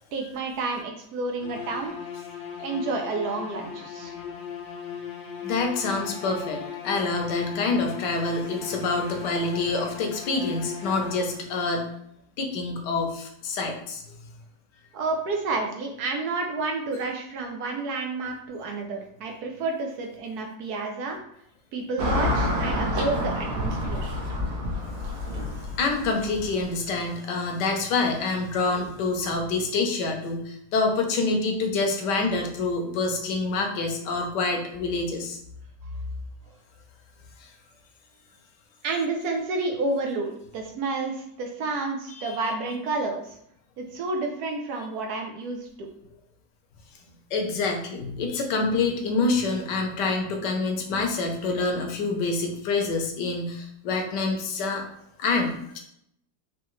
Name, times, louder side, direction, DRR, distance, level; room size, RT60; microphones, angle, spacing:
voice 1, 0.1-1.9 2.6-4.1 14.9-21.2 21.7-24.1 38.8-43.3 43.8-45.9, right 3 dB, 70° right, 2 dB, 1.0 m, -30 dB
sound 1, 1.4-11.6, left 8 dB, 90° left, 1.5 m, -37 dB
voice 2, 5.4-11.9 12.4-14.2 24.8-35.4 37.4-37.5 42.1-42.4 47.3-54.8 55.2-55.8, left 3 dB, 70° left, 3 dB, 1.3 m, -27 dB
Car passing by / Traffic noise roadway noise, 22.0-26.6, left 1 dB, 85° right, 1.7 m, -28 dB
4.6 x 2.8 x 3.1 m, 0.73 s
omnidirectional pair, 2.1 m